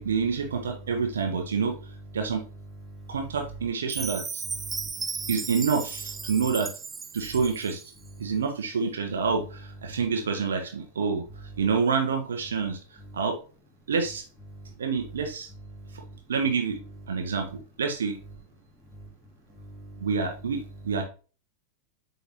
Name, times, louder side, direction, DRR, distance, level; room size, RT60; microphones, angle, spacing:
voice 1, 0.0-1.8 2.1-2.4 3.1-4.4 5.3-6.7 7.1-7.8 8.2-11.2 11.6-12.8 13.1-13.4 13.9-14.2 14.8-15.5 16.3-16.8 17.1-18.2 20.0-21.0, right 5 dB, 65° right, 4 dB, 1.0 m, -27 dB
voice 2, 2.7-3.2 4.6-5.3 7.2-7.4 8.0-8.4 9.9-10.0 13.0-13.2 14.5-14.7 15.7-16.2 17.1-17.4 18.9-19.1 19.5-20.1, right 2 dB, ahead, -5 dB, 3.0 m, -45 dB
Chime, 3.9-8.0, right 5 dB, 15° right, 0.3 m, -35 dB
8.0 x 4.1 x 2.9 m, 0.35 s
figure-of-eight pair, 90°, 0 cm